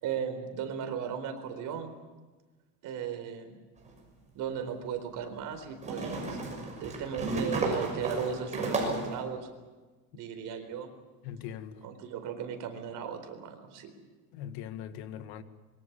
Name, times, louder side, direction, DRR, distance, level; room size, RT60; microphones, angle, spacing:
voice 1, 0.0-1.9 2.8-3.6 4.3-6.4 6.8-9.5 10.1-10.9 11.8-13.9, right 8 dB, 55° right, 4.2 m, -36 dB
sound 1, 3.9-4.0 5.8-9.2, right 2 dB, 20° right, 6.4 m, -33 dB
voice 2, 11.2-11.8 14.3-15.4, left 10 dB, 85° left, 2.0 m, -40 dB
26.0 x 23.5 x 7.3 m
cardioid pair, 170°, 38 cm